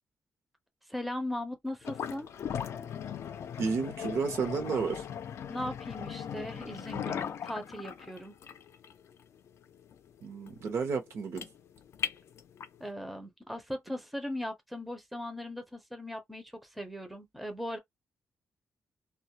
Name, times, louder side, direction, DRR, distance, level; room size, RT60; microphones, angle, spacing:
voice 1, 0.9-2.3 5.5-8.3 12.8-17.8, left 1 dB, ahead, 0.5 m, -38 dB
sound 1, 1.8-12.8, left 8 dB, 60° left, 0.4 m, -39 dB
voice 2, 3.6-5.0 10.2-11.5, right 5 dB, 65° right, 0.7 m, -31 dB
2.2 x 2.0 x 2.8 m
wide cardioid pair, 145°, 5 cm